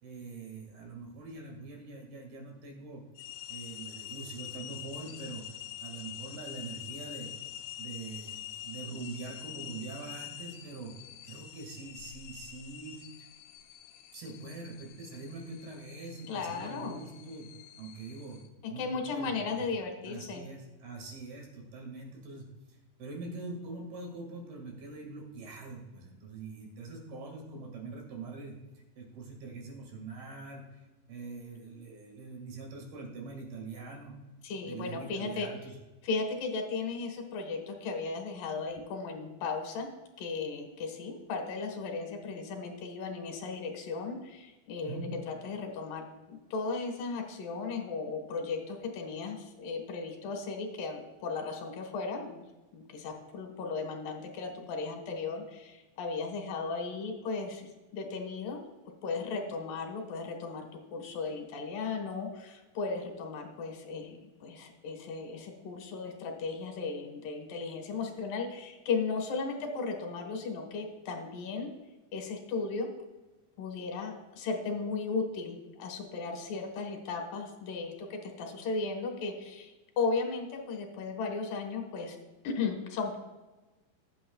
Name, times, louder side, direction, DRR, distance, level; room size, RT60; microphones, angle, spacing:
voice 1, 0.0-3.0 3.5-5.4 5.8-7.3 7.8-10.9 11.3-13.0 14.1-17.5 17.8-18.4 18.7-19.6 20.0-22.5 23.0-34.1 34.6-35.7 44.8-45.1, right 3 dB, 60° right, 0 dB, 3.6 m, -43 dB
sound 1, 3.2-18.5, left 12 dB, 90° left, 2.1 m, -46 dB
voice 2, 16.3-17.0 18.6-20.5 34.4-35.5 36.0-39.9 40.2-45.0 45.3-52.4 52.7-58.6 59.0-60.6 60.9-71.7 72.1-72.9 73.6-82.2 82.4-83.2, left 4 dB, 60° left, 4 dB, 2.7 m, -36 dB
20.0 x 8.8 x 2.3 m, 1.1 s
omnidirectional pair, 5.3 m